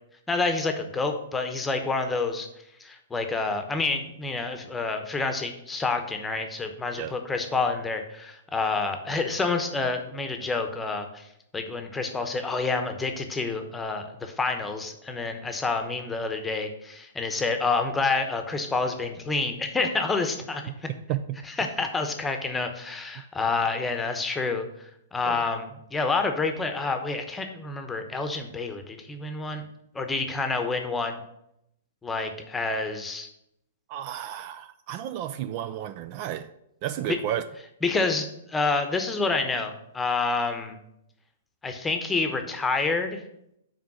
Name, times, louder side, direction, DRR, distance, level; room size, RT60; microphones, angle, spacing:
voice 1, 0.3-2.5 2.8-11.3 11.5-20.9 21.6-24.6 25.1-29.6 29.9-31.2 32.0-33.3 37.8-40.8 41.6-43.2, left 3 dB, 10° left, 5 dB, 0.9 m, -28 dB
voice 2, 20.9-21.4 25.3-25.4 33.9-36.5 36.8-37.4, right 11 dB, 40° right, 12 dB, 0.4 m, -32 dB
5.9 x 4.5 x 6.3 m, 0.78 s
figure-of-eight pair, 115°, 0 cm